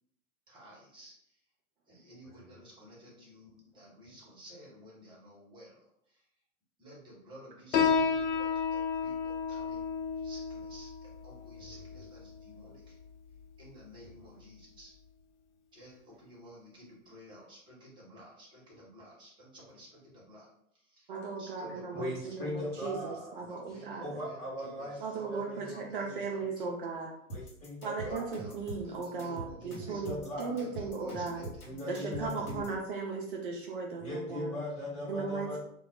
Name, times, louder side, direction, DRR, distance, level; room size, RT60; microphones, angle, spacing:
voice 1, 0.5-1.4 1.9-6.2 6.8-9.9 10.2-12.9 13.6-14.9 15.7-20.5 20.7-21.1 21.4-26.0 26.3-26.8 28.0-30.0 30.5-31.9, equal, 10° right, -5 dB, 0.9 m, -53 dB
Piano, 7.7-14.8, left 5 dB, 55° left, 0.5 m, -33 dB
voice 2, 21.1-24.1 25.0-27.1 27.8-31.4 31.9-34.5 35.1-35.6, right 4 dB, 40° right, 0 dB, 0.4 m, -37 dB
voice 3, 21.9-23.4 23.7-26.2 27.3-28.3 29.6-30.6 31.6-32.7 34.0-35.6, left 1 dB, 15° left, -7 dB, 1.3 m, -39 dB
sound 1, 27.3-32.8, right 1 dB, 85° left, 1.0 m, -43 dB
2.2 x 2.0 x 3.5 m, 0.71 s
figure-of-eight pair, 100°, 43 cm